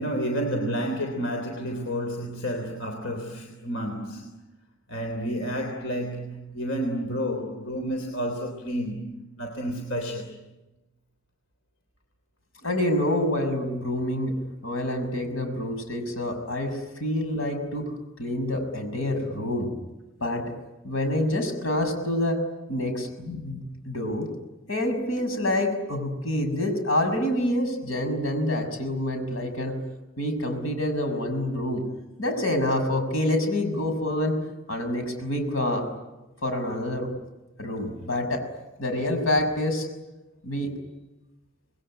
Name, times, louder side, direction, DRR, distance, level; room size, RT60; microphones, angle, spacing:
voice 1, 0.0-4.3 4.9-9.1 9.4-10.4, equal, 70° left, 4 dB, 3.4 m, -30 dB
voice 2, 12.6-14.3 14.6-17.8 18.2-19.7 20.2-20.4 20.8-22.4 22.7-24.3 24.7-29.8 30.2-31.8 32.2-34.4 34.7-35.8 36.4-37.1 37.6-38.4 38.8-39.9 40.4-40.7, left 1 dB, 85° left, 6 dB, 6.4 m, -27 dB
27.0 x 21.0 x 10.0 m, 1.0 s
head